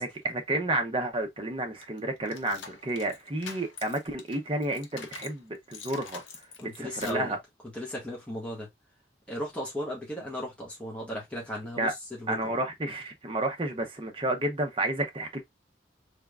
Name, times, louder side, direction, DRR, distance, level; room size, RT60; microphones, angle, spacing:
voice 1, 0.0-6.2 6.6-7.4 11.8-11.9 12.3-15.4, right 1 dB, 30° right, 0.8 m, -31 dB
sound 1, 1.8-5.4 5.7-7.3, left 6 dB, 85° left, 0.8 m, -45 dB
voice 2, 6.6-7.4 7.7-8.7 9.3-12.6, equal, 5° left, 1.5 m, -36 dB
3.6 x 3.5 x 2.3 m
head